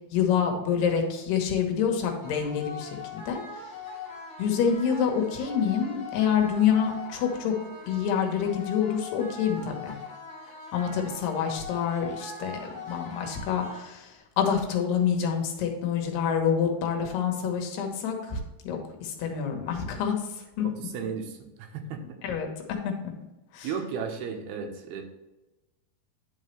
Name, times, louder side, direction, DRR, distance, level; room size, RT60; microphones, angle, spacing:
voice 1, 0.1-3.4 4.4-7.5 7.9-10.0 10.7-18.4 18.6-20.2 20.6-20.7 22.2-22.5 23.5-23.7, left 7 dB, 80° left, 3 dB, 3.3 m, -27 dB
sound 1, 2.2-14.2, left 4 dB, 40° left, 2.5 m, -42 dB
voice 2, 20.6-22.0 23.6-25.0, right 6 dB, 80° right, 3 dB, 3.0 m, -34 dB
10.0 x 5.6 x 3.2 m, 1.0 s
omnidirectional pair, 4.6 m